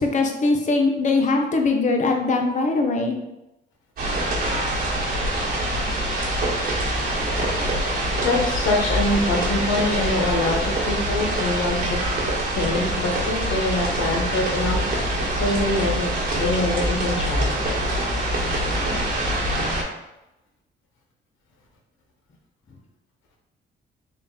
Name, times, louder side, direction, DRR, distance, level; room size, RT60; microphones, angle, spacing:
voice 1, 0.0-3.2, left 3 dB, 40° left, 3 dB, 0.7 m, -21 dB
sound 1, 4.0-19.8, right 1 dB, 50° right, 1.4 m, -24 dB
voice 2, 8.2-12.0 12.6-17.6, left 2 dB, 85° left, 0 dB, 0.9 m, -25 dB
3.7 x 2.5 x 3.6 m, 0.92 s
cardioid pair, 90°, 20 cm